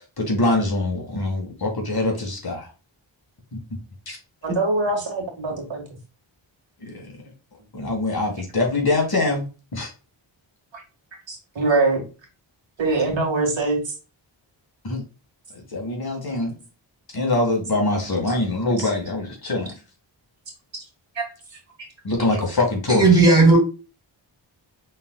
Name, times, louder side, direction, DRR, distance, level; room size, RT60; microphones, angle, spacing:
voice 1, 0.0-2.7 3.5-3.6 4.1-4.2 6.8-7.2 7.7-9.9 14.8-15.0 15.5-16.5 17.1-19.7 22.0-23.2, left 2 dB, 50° left, 1.9 m, -24 dB
voice 2, 4.4-5.8 10.7-10.8 11.3-12.0 12.8-13.9 16.5-16.6 18.8-18.9 21.1-21.6, right 3 dB, 70° right, 1.8 m, -23 dB
voice 3, 22.9-23.6, right 3 dB, 10° right, 2.7 m, -14 dB
5.4 x 3.8 x 2.3 m
wide cardioid pair, 100°, 48 cm